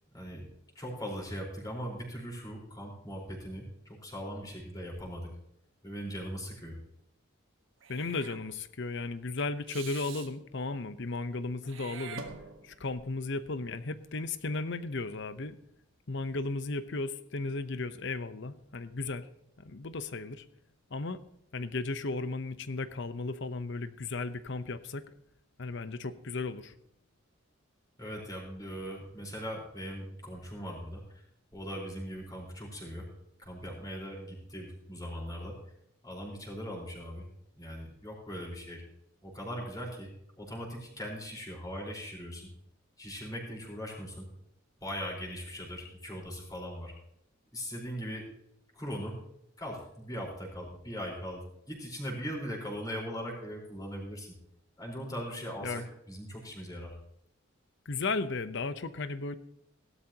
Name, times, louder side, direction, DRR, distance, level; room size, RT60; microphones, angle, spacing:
voice 1, 0.1-0.5 0.7-5.3 5.8-6.7 28.0-31.2 31.5-33.1 33.4-35.6 36.0-37.3 37.6-38.8 39.2-40.1 40.4-42.5 43.0-44.2 44.8-46.9 47.5-48.3 48.7-49.2 49.6-54.3 54.8-56.9, equal, 20° left, -1 dB, 4.4 m, -40 dB
Meow / Hiss, 7.8-8.4 9.7-10.3 11.6-12.9, right 6 dB, 65° right, 1.4 m, -45 dB
voice 2, 7.9-12.2 12.6-15.6 16.1-19.3 19.6-20.5 20.9-21.2 21.5-25.1 25.6-26.7 55.6-55.8 57.9-59.4, left 3 dB, 60° left, 12 dB, 0.8 m, -35 dB
17.0 x 12.5 x 2.9 m, 0.79 s
head